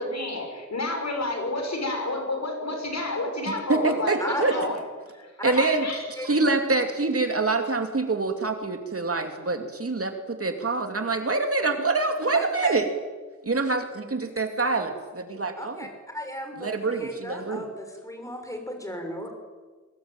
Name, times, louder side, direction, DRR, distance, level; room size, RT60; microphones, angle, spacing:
voice 1, 0.0-4.8 5.1-5.3 5.6-6.0, left 2 dB, 65° left, 3 dB, 6.4 m, -30 dB
voice 2, 3.5-4.6 5.4-5.9 6.2-12.9 13.4-15.9 16.6-17.7, right 3 dB, 50° right, 5 dB, 2.7 m, -26 dB
voice 3, 4.2-4.7 5.4-5.5 6.2-6.3 12.3-12.8 15.6-15.9 16.1-19.3, equal, 10° left, 4 dB, 6.6 m, -35 dB
23.0 x 20.0 x 9.0 m, 1.4 s
wide cardioid pair, 80°, 29 cm